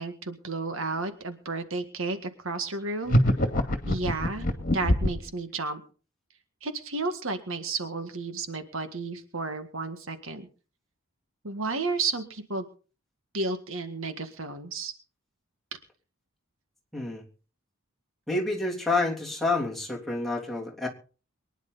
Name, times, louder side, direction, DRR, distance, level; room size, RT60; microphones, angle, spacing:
voice 1, 0.0-3.2 3.9-4.5 4.7-5.8 6.6-10.5 11.4-12.7 13.3-14.9, right 3 dB, 70° right, 8 dB, 1.8 m, -32 dB
sound 1, 3.1-5.3, equal, 40° left, 2.2 m, -23 dB
voice 2, 16.9-17.2 18.3-20.9, left 2 dB, ahead, -3 dB, 3.3 m, -28 dB
23.5 x 10.5 x 4.1 m, 0.37 s
head